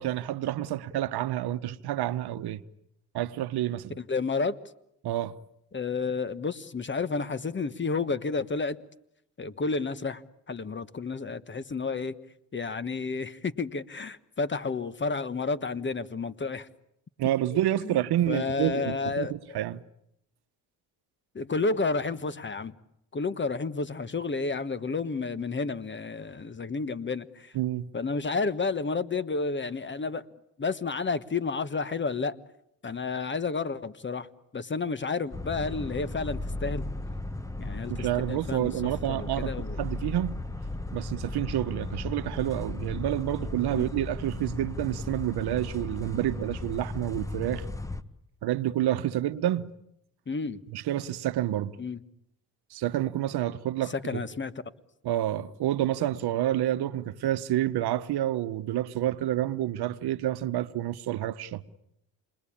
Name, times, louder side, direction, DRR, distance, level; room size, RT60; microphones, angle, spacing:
voice 1, 0.0-2.6 3.1-4.0 5.0-5.3 17.2-19.8 27.5-27.9 37.9-40.4 40.9-47.6 48.4-49.7 50.7-51.7 52.7-54.2 55.0-61.7, right 13 dB, 65° right, 1.1 m, -29 dB
voice 2, 4.0-4.6 5.7-8.8 9.4-10.2 10.5-12.2 12.5-16.7 17.5-18.0 18.3-19.3 21.3-22.7 23.1-27.5 27.9-30.2 30.6-32.3 32.8-34.3 34.5-36.8 37.6-38.7 39.1-39.8 43.7-43.8 50.3-50.6 51.8-52.0 53.9-54.5, left 4 dB, 25° left, 1.3 m, -31 dB
sound 1, 35.3-48.0, left 2 dB, 10° left, 1.3 m, -36 dB
28.5 x 21.5 x 8.7 m
supercardioid pair, 75°, 41 cm